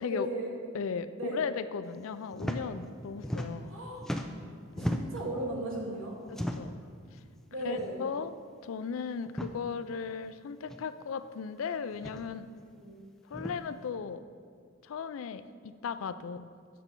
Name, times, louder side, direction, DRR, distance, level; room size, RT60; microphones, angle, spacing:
voice 1, 0.0-0.6 1.2-1.5 3.7-4.0 4.8-6.2 7.5-8.0 12.7-13.0, right 1 dB, 80° right, -3 dB, 1.9 m, -36 dB
voice 2, 0.7-3.7 4.8-5.0 6.6-6.8 7.6-8.3 8.6-12.5 13.3-14.2 14.8-16.5, left 6 dB, 75° left, 13 dB, 0.4 m, -36 dB
sound 1, 2.3-2.6 2.9-3.7 4.0-5.3 6.3-6.8 7.7-7.9 8.2-8.3 9.2-9.5 10.7-10.8 11.9-12.2 13.3-13.6, equal, ahead, 0.3 m, -35 dB
8.2 x 6.6 x 4.4 m, 2.1 s
head